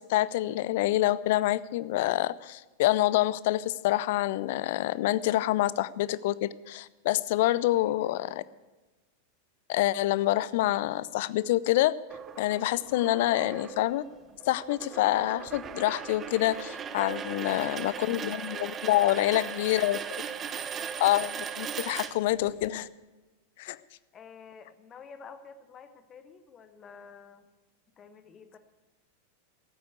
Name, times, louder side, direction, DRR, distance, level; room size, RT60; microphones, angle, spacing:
voice 1, 0.0-8.4 9.7-12.0 12.4-14.0 14.5-20.2 21.0-22.9 23.6-23.8, left 15 dB, 50° left, 19 dB, 0.4 m, -27 dB
voice 2, 7.7-8.6 17.2-18.3 19.1-19.7 20.4-21.0 24.1-27.5 28.0-28.6, left 6 dB, 25° left, 10 dB, 1.2 m, -50 dB
sound 1, 12.1-22.7, right 7 dB, 25° right, 0.7 m, -38 dB
14.0 x 8.7 x 8.2 m, 1.2 s
figure-of-eight pair, 90°, 0 cm